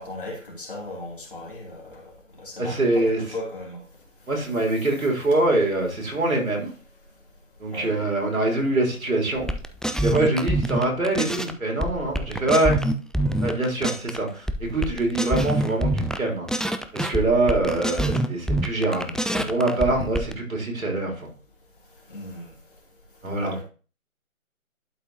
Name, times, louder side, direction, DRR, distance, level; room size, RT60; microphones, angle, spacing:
voice 1, 0.0-2.0 2.4-3.8 4.5-4.6 7.7-7.9 22.1-22.5 23.4-23.6, left 2 dB, 40° left, 2.7 m, -36 dB
voice 2, 2.6-3.2 4.3-6.7 7.6-9.5 10.0-12.8 13.4-16.5 16.9-21.3 23.2-23.6, right 2 dB, 75° right, 3.8 m, -24 dB
sound 1, 9.4-11.5 11.8-14.2 14.5-16.2 16.5-20.3, right 1 dB, ahead, 0.3 m, -26 dB
11.5 x 5.8 x 2.8 m
figure-of-eight pair, 175°, 42 cm